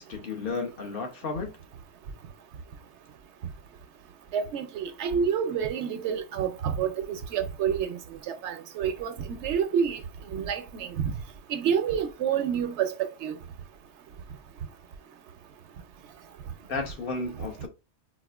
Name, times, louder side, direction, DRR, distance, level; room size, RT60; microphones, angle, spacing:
voice 1, 0.0-1.5 16.7-17.7, left 4 dB, 55° left, 0.9 m, -33 dB
voice 2, 4.3-8.0 8.3-10.0 10.3-11.1 11.5-13.3, right 7 dB, 80° right, 0.9 m, -28 dB
4.1 x 2.4 x 2.3 m
omnidirectional pair, 1.2 m